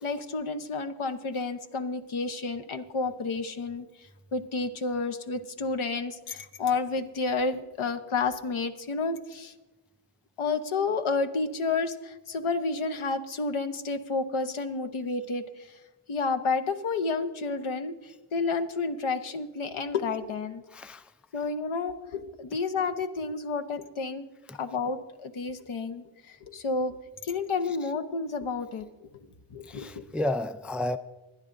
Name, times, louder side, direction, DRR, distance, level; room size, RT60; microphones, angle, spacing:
voice 1, 0.0-3.9 4.3-9.5 10.4-15.8 16.1-18.0 18.3-20.6 21.3-24.2 24.6-27.0 27.2-29.1 29.5-30.0, left 4 dB, 75° left, 1.0 m, -30 dB
voice 2, 20.7-21.1 24.5-24.6 27.6-27.9 29.6-31.0, left 1 dB, 5° right, 0.3 m, -32 dB
23.5 x 9.8 x 2.6 m
cardioid pair, 60°, 50 cm